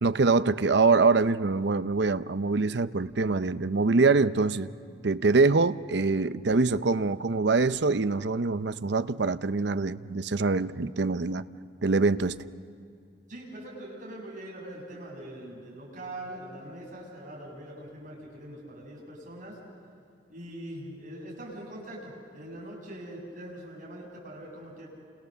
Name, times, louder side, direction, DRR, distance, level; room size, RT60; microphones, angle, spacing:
voice 1, 0.0-4.7 5.0-11.4 11.8-12.4, right 3 dB, 60° right, 13 dB, 0.6 m, -24 dB
voice 2, 13.3-19.6 20.3-24.9, right 1 dB, 40° right, -3 dB, 7.8 m, -42 dB
29.5 x 28.5 x 6.9 m, 2.4 s
head